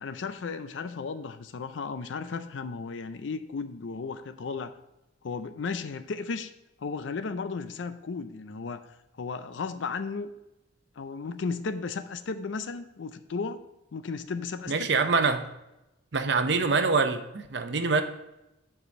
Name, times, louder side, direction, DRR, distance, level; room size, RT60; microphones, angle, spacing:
voice 1, 0.0-4.7 5.2-6.5 6.8-8.9 9.2-10.3 11.0-13.6 13.9-14.9, left 4 dB, 75° left, 11 dB, 0.4 m, -34 dB
voice 2, 14.7-15.4 16.1-18.0, right 4 dB, 60° right, 8 dB, 0.7 m, -25 dB
7.5 x 4.9 x 5.2 m, 0.93 s
head